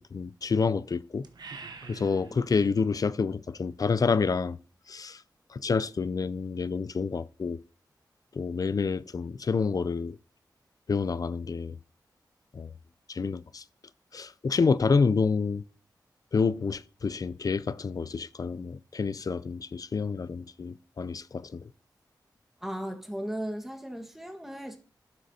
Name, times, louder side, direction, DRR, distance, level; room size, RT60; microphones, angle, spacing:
voice 1, 0.1-1.3 1.9-4.6 4.9-5.2 5.5-7.6 8.3-10.2 10.9-11.8 12.5-12.7 13.1-13.6 14.1-15.6 16.3-21.7, left 5 dB, 50° left, 0.4 m, -28 dB
sound 1, 1.2-2.8, right 4 dB, 65° right, 0.9 m, -45 dB
voice 2, 22.6-24.8, equal, 5° right, 1.5 m, -36 dB
11.5 x 6.2 x 2.8 m
cardioid pair, 50°, 8 cm